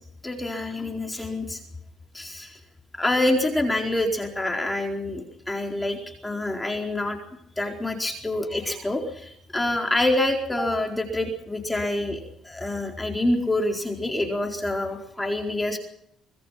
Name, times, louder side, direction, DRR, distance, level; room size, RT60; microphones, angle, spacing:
voice 1, 0.2-1.6 2.1-2.6 2.9-7.2 7.6-15.8, left 1 dB, 10° left, 2 dB, 4.4 m, -26 dB
24.5 x 21.0 x 5.9 m, 0.73 s
cardioid pair, 100°, 0 cm